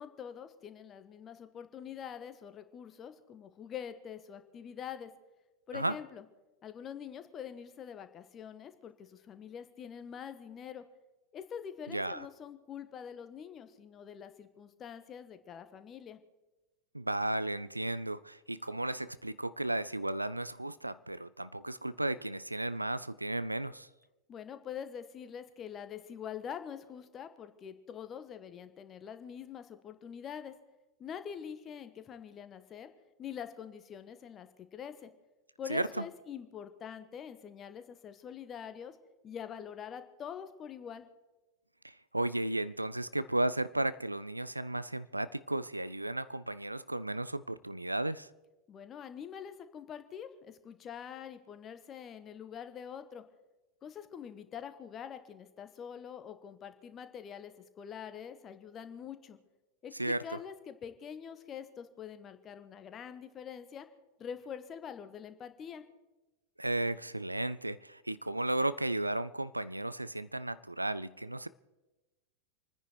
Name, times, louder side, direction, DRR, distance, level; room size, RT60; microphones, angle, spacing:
voice 1, 0.0-5.1 5.7-6.2 6.6-10.8 11.3-16.2 24.3-30.5 31.0-32.9 33.2-35.1 35.6-39.0 39.2-41.1 48.7-53.2 53.8-59.4 59.8-63.9 64.2-65.8, left 8 dB, 25° left, 1.3 m, -45 dB
voice 2, 11.9-12.3 16.9-23.9 35.7-36.0 41.8-48.3 60.0-60.4 66.6-71.5, right 1 dB, 85° right, 0.4 m, -34 dB
27.5 x 10.0 x 4.5 m
figure-of-eight pair, 90°, 0 cm